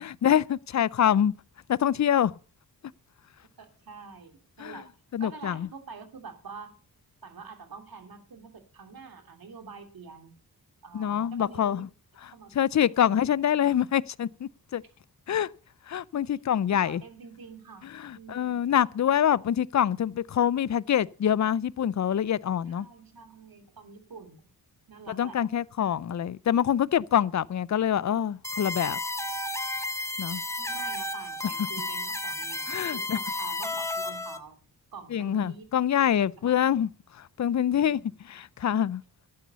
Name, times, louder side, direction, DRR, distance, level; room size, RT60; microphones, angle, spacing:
voice 1, 0.0-1.3 1.7-2.3 4.6-4.8 5.1-5.7 10.9-11.9 12.5-14.8 15.3-15.5 15.9-17.0 17.8-22.9 25.1-29.0 30.2-30.4 32.7-33.2 35.1-36.9 37.4-38.0 38.3-39.0, left 9 dB, 45° left, 0.6 m, -25 dB
voice 2, 3.6-4.9 5.2-6.7 7.2-10.3 10.8-11.8 12.3-12.5 13.0-13.3 13.5-13.9 16.3-16.4 16.7-17.9 18.1-18.6 22.7-24.5 24.9-25.4 30.6-34.6 34.9-35.8 36.0-36.9 37.7-38.1, right 5 dB, 65° right, 2.8 m, -46 dB
sound 1, 28.4-34.4, left 2 dB, 5° left, 1.5 m, -32 dB
12.5 x 9.4 x 6.8 m
cardioid pair, 60°, 38 cm